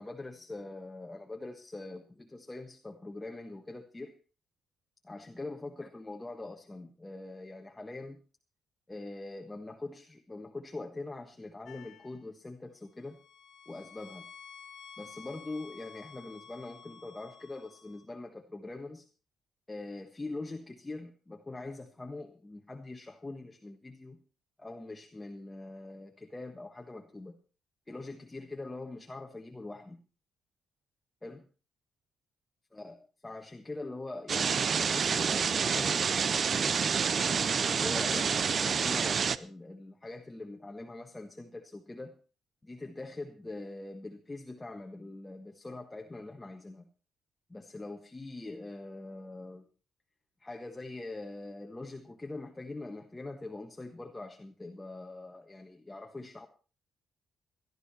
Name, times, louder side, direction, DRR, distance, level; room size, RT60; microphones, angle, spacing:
voice 1, 0.0-4.2 5.0-8.2 8.9-13.2 13.6-14.3 15.0-19.1 19.7-24.2 24.6-27.4 27.9-30.0 31.2-31.5 32.7-32.9 33.2-36.9 37.5-42.2 42.6-46.9 47.5-49.7 50.4-56.5, left 2 dB, 15° left, 3 dB, 1.5 m, -43 dB
sound 1, 11.7-12.2 12.9-18.0, left 7 dB, 75° left, 1.5 m, -52 dB
sound 2, 34.3-39.4, right 6 dB, 45° right, 0.6 m, -28 dB
17.0 x 12.5 x 4.3 m, 0.36 s
cardioid pair, 90°, 0 cm